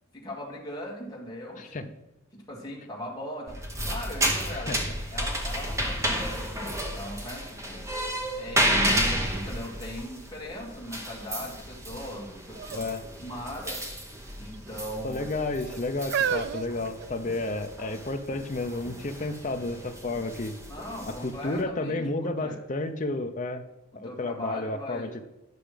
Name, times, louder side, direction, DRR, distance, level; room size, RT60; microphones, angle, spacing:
voice 1, 0.1-1.9 2.3-4.7 5.1-7.9 8.4-12.9 13.2-13.8 14.4-15.2 20.7-22.6 23.9-25.1, left 1 dB, 20° left, -4 dB, 2.1 m, -39 dB
sound 1, 3.5-21.6, right 1 dB, 15° right, 1.0 m, -32 dB
sound 2, 8.5-8.6 9.1-10.6 11.2-11.7 12.5-12.9 13.2-13.3 14.2-14.9 15.6-17.6 18.4-18.5, right 7 dB, 50° right, 0.3 m, -34 dB
voice 2, 15.0-20.6 21.1-23.6 23.9-25.2, left 2 dB, 35° left, 7 dB, 0.6 m, -31 dB
9.4 x 5.9 x 5.1 m, 0.90 s
head